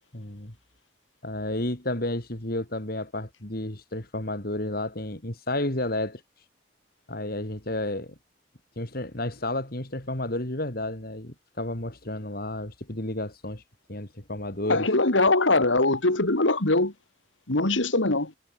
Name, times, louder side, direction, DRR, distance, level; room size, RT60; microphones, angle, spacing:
voice 1, 0.1-0.5 1.2-6.2 7.1-8.1 8.8-13.6 13.9-14.9, left 1 dB, 55° left, 3.4 m, -31 dB
voice 2, 14.7-16.9 17.5-18.3, left 2 dB, 85° left, 2.7 m, -22 dB
head